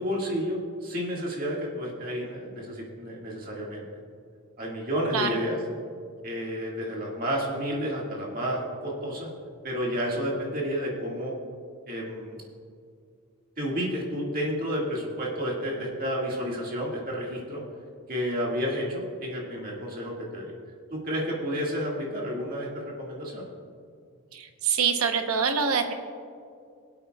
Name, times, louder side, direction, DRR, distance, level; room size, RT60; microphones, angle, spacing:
voice 1, 0.0-3.9 4.6-5.6 6.2-9.3 9.6-11.3 11.9-12.4 13.6-17.6 18.1-20.5 20.9-23.5, equal, 40° right, -3 dB, 1.9 m, -31 dB
voice 2, 24.3-25.9, right 6 dB, 85° right, 6 dB, 0.9 m, -25 dB
21.5 x 8.3 x 2.3 m, 2.3 s
head